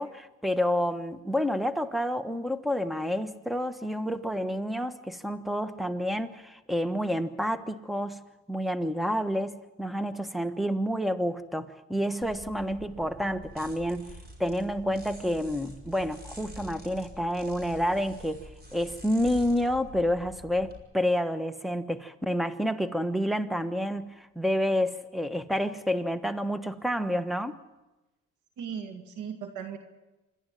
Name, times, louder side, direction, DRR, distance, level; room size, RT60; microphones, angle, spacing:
voice 1, 0.0-8.2 8.5-14.1 14.4-27.6, equal, ahead, 11 dB, 1.2 m, -29 dB
sound 1, 12.2-20.8, equal, 30° right, 5.5 m, -47 dB
voice 2, 28.6-29.8, right 7 dB, 80° right, 5 dB, 2.3 m, -37 dB
26.5 x 12.0 x 9.1 m, 1.1 s
cardioid pair, 90°, 30 cm